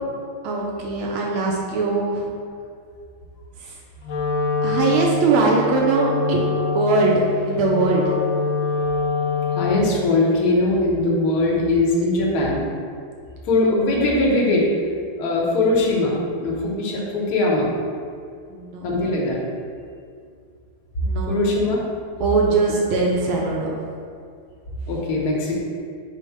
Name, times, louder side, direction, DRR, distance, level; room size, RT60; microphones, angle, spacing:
voice 1, 0.4-2.3 4.6-6.4 6.7-8.1 18.5-19.1 21.0-21.3 22.2-23.7, right 3 dB, 80° right, -2 dB, 1.4 m, -21 dB
Wind instrument woodwind instrument, 4.0-10.0, left 4 dB, 85° left, 0.7 m, -25 dB
voice 2, 9.5-12.7 13.5-14.6 15.2-17.7 18.8-19.4 21.3-21.8 22.5-22.6 24.9-25.6, left 2 dB, 60° left, -4 dB, 1.1 m, -20 dB
5.2 x 2.1 x 4.6 m, 2.2 s
omnidirectional pair, 2.3 m